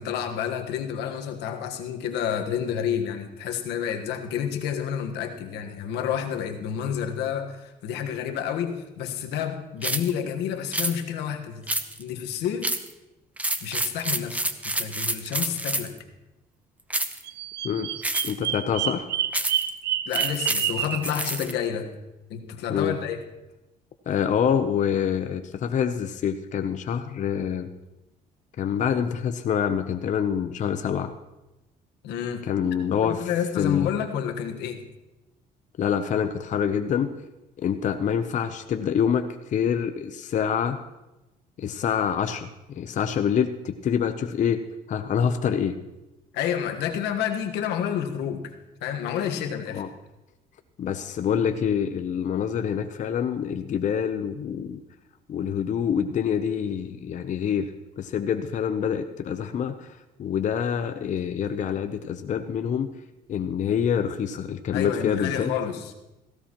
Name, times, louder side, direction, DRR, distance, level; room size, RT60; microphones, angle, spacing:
voice 1, 0.0-11.6 12.0-12.7 13.6-15.9 20.1-21.9 22.3-23.2 32.0-32.4 33.0-34.8 46.3-48.4 48.8-49.8 64.7-65.9, left 8 dB, 85° left, 5 dB, 1.4 m, -29 dB
sound 1, 9.8-10.1 10.7-10.9 11.7-12.1 12.6-12.9 13.4-16.0 16.9-17.2 18.0-18.5 19.3-19.7 20.1-21.5, right 1 dB, 10° right, 0.8 m, -28 dB
Bird vocalization bird call bird song, 17.2-21.1, right 10 dB, 75° right, 0.9 m, -28 dB
voice 2, 18.2-19.1 22.7-23.0 24.1-27.7 28.6-31.1 32.5-33.3 33.6-33.9 35.8-37.1 37.6-40.8 41.6-42.5 42.7-44.6 44.9-45.8 49.7-49.9 50.8-54.8 55.3-57.7 58.0-59.9 60.2-62.9 63.3-65.5, left 8 dB, 45° left, 8 dB, 0.7 m, -26 dB
17.5 x 16.0 x 3.0 m, 0.99 s
cardioid pair, 110°, 17 cm